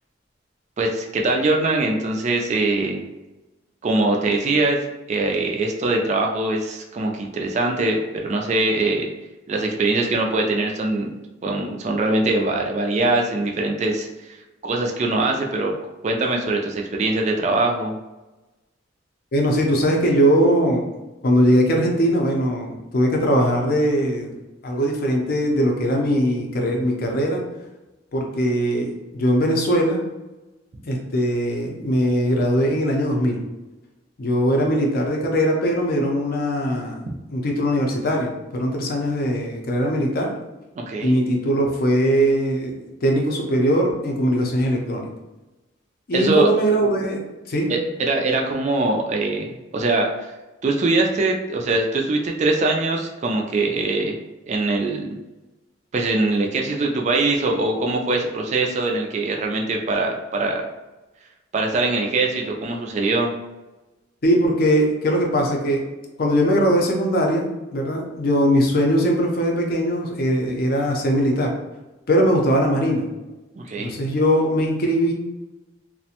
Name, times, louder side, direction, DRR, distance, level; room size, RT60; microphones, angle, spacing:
voice 1, 0.8-3.0 3.8-4.8 5.1-9.1 9.5-11.1 11.4-14.4 14.6-15.7 16.0-18.0 40.8-41.1 46.1-46.5 47.7-50.3 50.6-54.2 54.5-55.2 55.9-60.6 61.5-63.3 73.5-73.9, right 2 dB, 35° right, 1 dB, 0.3 m, -22 dB
voice 2, 19.3-20.9 21.2-24.3 24.6-27.4 28.1-30.0 30.9-33.4 34.2-37.0 37.3-40.3 41.0-42.7 43.0-45.0 46.1-47.2 47.5-47.7 64.2-65.8 66.2-71.5 72.1-73.1 73.8-75.1, equal, 50° left, 1 dB, 0.5 m, -20 dB
2.4 x 2.1 x 2.8 m, 1.1 s
head